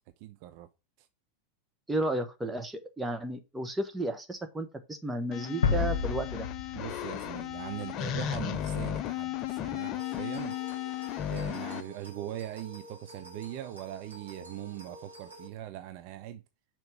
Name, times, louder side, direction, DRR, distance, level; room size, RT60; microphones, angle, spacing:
voice 1, 0.2-0.7 6.7-10.6 11.2-16.4, right 14 dB, 45° right, 0.6 m, -41 dB
voice 2, 1.9-6.5, right 1 dB, 10° right, 1.3 m, -33 dB
sound 1, 5.3-11.8, left 11 dB, 35° left, 0.6 m, -35 dB
sound 2, 5.6-8.5, left 6 dB, 65° left, 1.0 m, -31 dB
sound 3, 10.0-15.5, right 1 dB, 80° right, 2.4 m, -49 dB
5.8 x 4.5 x 6.1 m
figure-of-eight pair, 90°, 0 cm